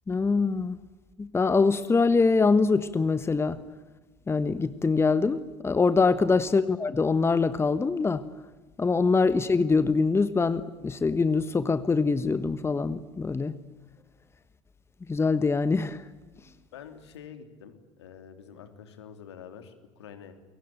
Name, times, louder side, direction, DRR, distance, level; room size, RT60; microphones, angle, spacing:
voice 1, 0.1-0.8 1.2-3.6 4.3-8.2 8.8-13.5 15.1-16.0, left 4 dB, 15° left, 1.2 m, -24 dB
voice 2, 16.7-20.3, left 7 dB, 70° left, 3.3 m, -47 dB
29.0 x 23.0 x 8.8 m
figure-of-eight pair, 65°, 15 cm